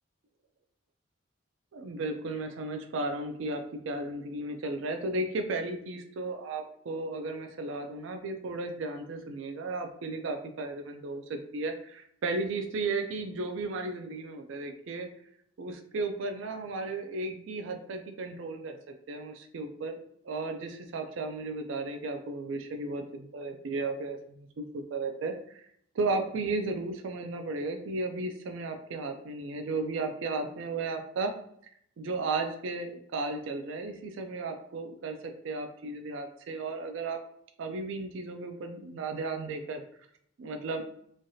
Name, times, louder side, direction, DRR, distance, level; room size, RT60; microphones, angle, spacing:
voice 1, 1.7-15.1 15.6-18.8 19.1-20.0 20.2-25.7 25.9-31.3 32.0-37.2 37.6-39.8 40.4-40.8, right 3 dB, 65° right, 5 dB, 0.4 m, -34 dB
3.1 x 2.3 x 2.6 m, 0.68 s
head